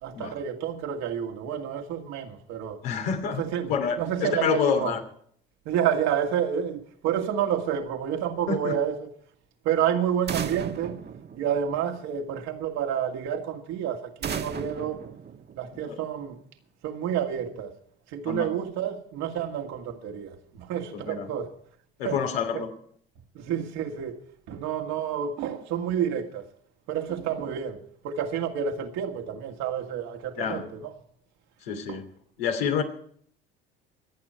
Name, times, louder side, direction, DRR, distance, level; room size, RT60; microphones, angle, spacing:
voice 1, 0.0-2.8 3.4-4.9 5.7-9.1 9.6-11.0 11.4-15.0 15.6-16.4 16.8-17.8 18.1-21.5 22.0-22.2 22.5-22.7 23.3-24.2 24.5-26.5 26.9-30.9 31.9-32.0, right 9 dB, 65° right, 2.2 m, -29 dB
voice 2, 2.8-5.0 8.5-8.8 15.9-16.0 18.2-18.5 20.9-21.3 22.0-22.7 30.4-30.6 31.6-32.1 32.4-32.8, left 7 dB, 80° left, 3.0 m, -28 dB
sound 1, 10.3-12.1 14.2-16.0, right 6 dB, 35° right, 1.4 m, -35 dB
26.5 x 8.8 x 4.5 m
hypercardioid pair, 70°, 30 cm